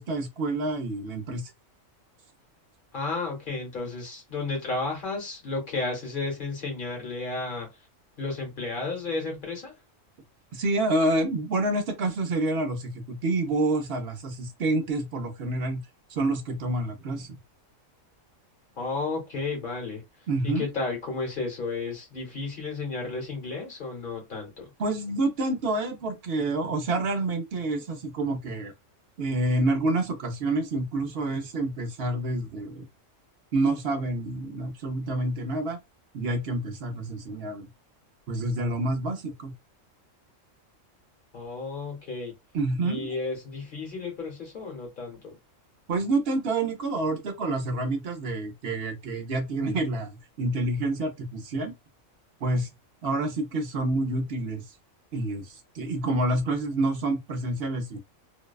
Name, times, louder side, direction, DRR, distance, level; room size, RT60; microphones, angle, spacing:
voice 1, 0.0-1.5 10.5-15.8 16.1-17.3 20.3-20.6 24.8-28.7 29.2-32.9 33.5-35.8 36.1-37.7 38.3-39.5 42.5-43.1 45.9-51.7 52.4-52.7 53.0-54.6 55.1-58.0, right 2 dB, 60° right, 0.8 m, -28 dB
voice 2, 2.9-7.7 8.2-9.7 18.8-24.7 41.3-42.3 42.8-45.4, left 3 dB, 45° left, 1.1 m, -33 dB
2.6 x 2.2 x 2.2 m
omnidirectional pair, 1.3 m